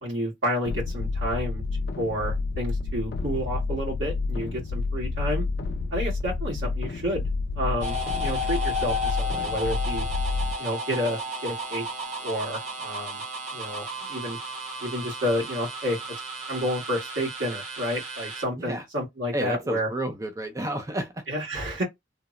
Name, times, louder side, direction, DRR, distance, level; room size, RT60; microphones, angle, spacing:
voice 1, 0.0-1.6 2.0-5.5 5.9-7.2 7.5-10.0 10.6-11.9 12.2-13.2 13.5-14.4 14.8-16.0 16.5-19.9 21.3-21.8, equal, 90° right, 1.4 m, -30 dB
sound 1, 0.6-10.5, left 3 dB, 55° left, 0.3 m, -29 dB
sound 2, 7.8-18.4, left 1 dB, 40° right, 0.8 m, -33 dB
voice 2, 19.3-21.2, right 1 dB, 20° right, 0.4 m, -31 dB
2.8 x 2.0 x 2.4 m
head